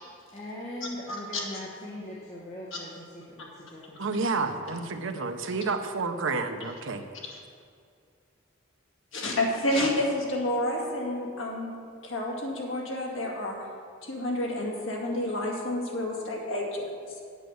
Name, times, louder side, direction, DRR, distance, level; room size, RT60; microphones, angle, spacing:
voice 1, 0.3-4.7, left 1 dB, 35° left, -5 dB, 1.3 m, -41 dB
voice 2, 4.0-7.0, right 3 dB, 70° right, 7 dB, 0.8 m, -30 dB
voice 3, 9.1-11.7 12.0-13.6 14.0-17.2, left 1 dB, 70° left, -2 dB, 2.1 m, -30 dB
8.4 x 8.1 x 6.4 m, 2.3 s
head